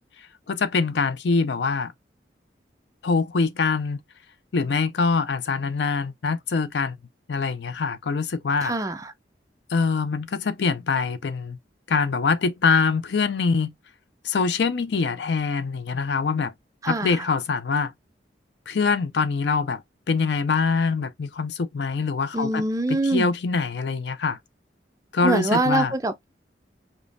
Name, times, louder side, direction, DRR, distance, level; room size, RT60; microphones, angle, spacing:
voice 1, 0.5-1.9 3.0-4.0 4.5-7.0 7.3-8.7 9.7-11.6 11.9-13.7 14.2-16.5 16.9-17.9 18.7-19.8 20.1-22.6 22.9-24.4 25.1-25.9, left 4 dB, 75° left, 0.5 m, -24 dB
voice 2, 8.6-9.1 16.8-17.2 22.3-23.3 25.2-26.3, right 2 dB, 20° right, 0.4 m, -24 dB
5.1 x 2.1 x 2.5 m
head